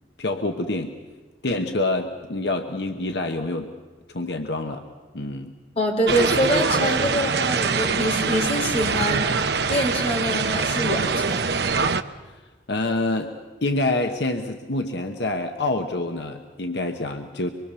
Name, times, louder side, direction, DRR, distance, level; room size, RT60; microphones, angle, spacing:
voice 1, 0.2-0.9 1.4-3.7 4.1-4.8 5.1-5.5 12.7-13.3 13.6-17.5, left 2 dB, 70° left, 5 dB, 1.2 m, -26 dB
voice 2, 5.7-11.5, equal, 35° left, 1 dB, 3.4 m, -25 dB
sound 1, 6.1-12.0, right 5 dB, 65° right, 0.8 m, -23 dB
25.0 x 23.5 x 6.9 m, 1.3 s
head